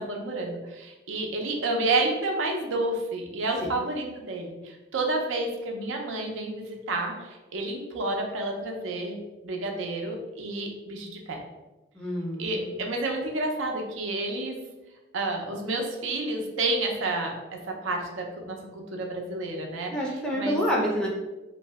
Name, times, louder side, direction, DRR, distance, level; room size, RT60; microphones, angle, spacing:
voice 1, 0.0-9.2 9.4-11.4 12.3-14.6 15.1-17.3 17.7-19.9 20.3-20.6, right 2 dB, 80° right, 2 dB, 0.5 m, -30 dB
voice 2, 11.9-12.8 19.9-21.1, equal, 5° left, -3 dB, 0.4 m, -28 dB
2.6 x 2.0 x 3.4 m, 1.1 s
head